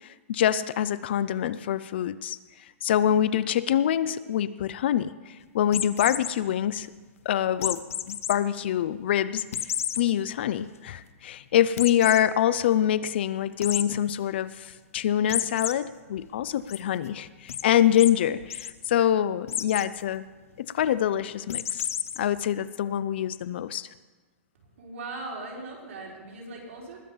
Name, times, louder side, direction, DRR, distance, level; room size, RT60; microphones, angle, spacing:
voice 1, 0.0-2.4 2.8-6.9 7.3-9.5 10.0-20.2 20.6-21.9 22.2-23.9, left 10 dB, 45° left, 16 dB, 0.4 m, -25 dB
sound 1, 5.7-6.3 7.6-8.3 8.8-8.9 9.5-10.0 10.5-10.6 10.9-11.0 11.8-12.2 13.6-13.8 15.3-15.7 16.2-16.8 17.5-17.6 18.0-18.1 18.4-18.7 19.5-19.9 21.5-22.2, left 9 dB, 70° left, 0.8 m, -30 dB
voice 2, 24.6-27.0, right 2 dB, 60° right, -2 dB, 4.2 m, -39 dB
20.5 x 7.1 x 5.5 m, 1.3 s
hypercardioid pair, 175°, 8 cm